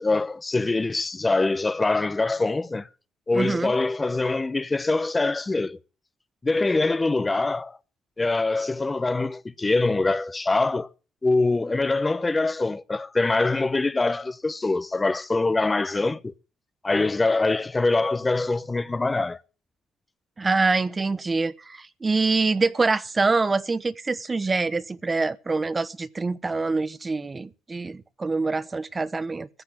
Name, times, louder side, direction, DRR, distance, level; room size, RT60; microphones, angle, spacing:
voice 1, 0.0-2.9 3.3-5.8 6.4-7.8 8.2-10.9 11.2-16.3 16.8-19.4, left 3 dB, 20° left, 0.8 m, -24 dB
voice 2, 3.3-3.7 20.4-29.5, right 3 dB, 25° right, 1.0 m, -25 dB
15.0 x 8.1 x 9.2 m
cardioid pair, 90°, 0 cm